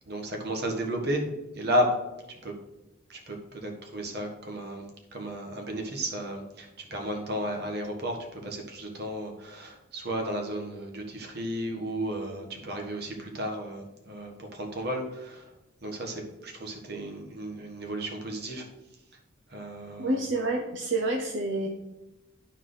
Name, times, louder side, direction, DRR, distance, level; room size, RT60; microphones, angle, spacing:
voice 1, 0.1-1.2 1.5-2.0 2.4-2.5 3.1-15.5 15.8-18.7 19.5-20.2, equal, 55° right, 2 dB, 1.5 m, -33 dB
voice 2, 20.0-21.7, right 2 dB, 75° right, 2 dB, 0.7 m, -28 dB
11.0 x 4.5 x 4.0 m, 0.97 s
head